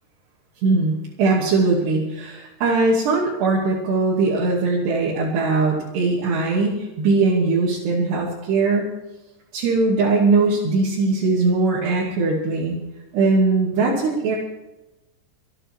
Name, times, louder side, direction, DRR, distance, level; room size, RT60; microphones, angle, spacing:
voice 1, 0.6-8.9 9.5-12.8 13.1-14.4, right 3 dB, 80° right, -5 dB, 4.6 m, -20 dB
25.0 x 9.9 x 4.7 m, 0.98 s
omnidirectional pair, 4.7 m